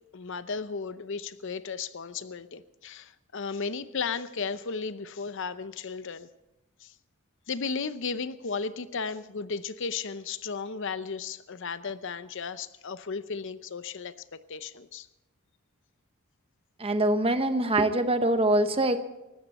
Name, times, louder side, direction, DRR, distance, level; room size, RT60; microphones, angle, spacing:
voice 1, 0.1-6.3 6.8-6.9 7.5-15.1, left 5 dB, 60° left, 13 dB, 0.7 m, -35 dB
voice 2, 16.8-19.0, right 1 dB, 25° right, 9 dB, 1.0 m, -24 dB
19.5 x 16.0 x 4.3 m, 0.98 s
head